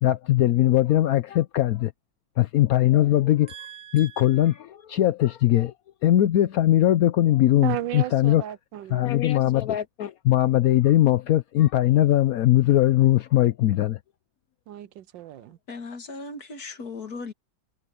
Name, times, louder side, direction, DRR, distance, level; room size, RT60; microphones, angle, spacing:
voice 1, 0.0-1.9 2.4-3.5 3.9-5.7 6.0-8.4 8.9-14.0, left 14 dB, 85° left, 0.7 m, -20 dB
voice 2, 3.5-4.5 7.6-9.2 14.7-15.6, right 13 dB, 75° right, 1.2 m, -35 dB
voice 3, 15.7-17.3, left 3 dB, 50° left, 2.3 m, -37 dB
omnidirectional pair, 2.3 m